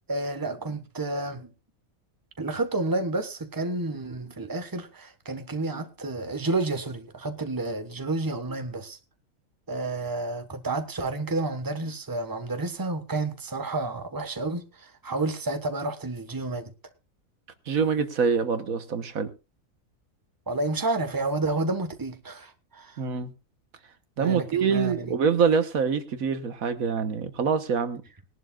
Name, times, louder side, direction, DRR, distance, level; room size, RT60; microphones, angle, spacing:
voice 1, 0.1-1.5 2.4-9.0 9.7-16.7 20.5-23.0 24.2-25.1, right 2 dB, 15° right, 1.2 m, -30 dB
voice 2, 17.7-19.3 23.0-23.3 24.2-28.0, right 6 dB, 80° right, 1.6 m, -25 dB
20.5 x 11.0 x 2.4 m
omnidirectional pair, 1.5 m